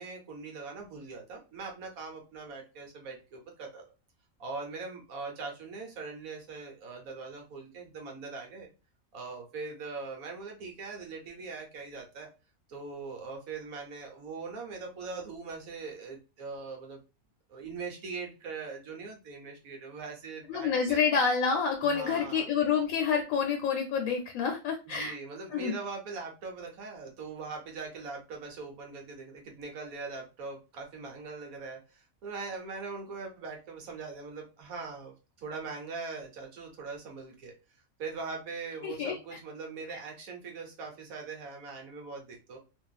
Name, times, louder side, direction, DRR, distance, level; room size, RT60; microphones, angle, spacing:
voice 1, 0.0-3.8 4.4-8.7 9.1-12.3 12.7-17.0 17.5-21.0 21.8-22.5 24.9-37.6 38.0-42.6, right 4 dB, 80° right, 2 dB, 1.3 m, -41 dB
voice 2, 20.5-25.1 25.5-25.8 38.8-39.2 39.9-40.0, left 6 dB, 75° left, 3 dB, 1.0 m, -28 dB
2.6 x 2.4 x 2.3 m, 0.29 s
omnidirectional pair, 1.5 m